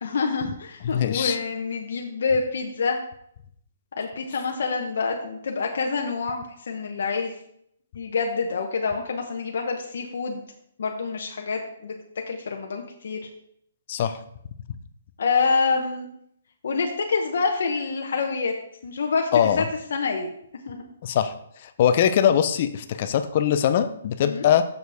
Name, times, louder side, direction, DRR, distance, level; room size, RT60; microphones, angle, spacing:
voice 1, 0.0-3.0 4.0-7.3 7.9-10.4 10.8-11.9 12.3-13.3 15.2-16.1 16.6-18.5 18.8-19.6 19.9-20.3 20.7-20.8 24.2-24.5, left 4 dB, 65° left, 2 dB, 0.8 m, -27 dB
voice 2, 0.8-1.4 13.9-14.2 19.3-19.6 21.0-21.3 21.6-24.6, left 9 dB, 40° left, 10 dB, 0.5 m, -21 dB
6.6 x 6.6 x 3.4 m, 0.72 s
hypercardioid pair, 165°, 0 cm